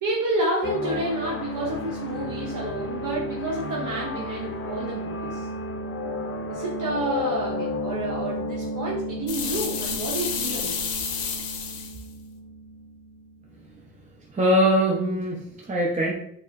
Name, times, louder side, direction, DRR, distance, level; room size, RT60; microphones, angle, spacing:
voice 1, 0.0-5.5 6.5-10.9, right 1 dB, 60° right, -3 dB, 0.8 m, -29 dB
sound 1, 0.6-13.7, left 1 dB, 40° left, 0.5 m, -33 dB
sound 2, 9.3-12.0, left 6 dB, 85° left, 0.6 m, -30 dB
voice 2, 14.3-16.1, equal, 20° right, -3 dB, 0.6 m, -22 dB
4.2 x 2.0 x 2.5 m, 0.70 s
cardioid pair, 65°, 35 cm